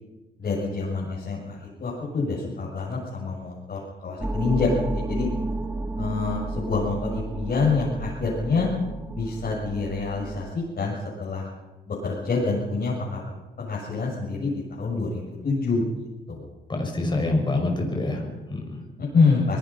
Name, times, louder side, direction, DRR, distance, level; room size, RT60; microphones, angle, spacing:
voice 1, 0.4-5.3 6.0-8.7 9.1-11.5 11.9-13.2 13.6-15.8 16.3-16.5 19.0-19.6, left 4 dB, 45° left, -6 dB, 7.5 m, -26 dB
sound 1, 4.2-10.5, right 2 dB, 10° right, 1.6 m, -31 dB
voice 2, 16.7-18.8, left 2 dB, 25° left, 2 dB, 6.4 m, -26 dB
25.5 x 19.0 x 5.8 m, 1.1 s
cardioid pair, 90°, 20 cm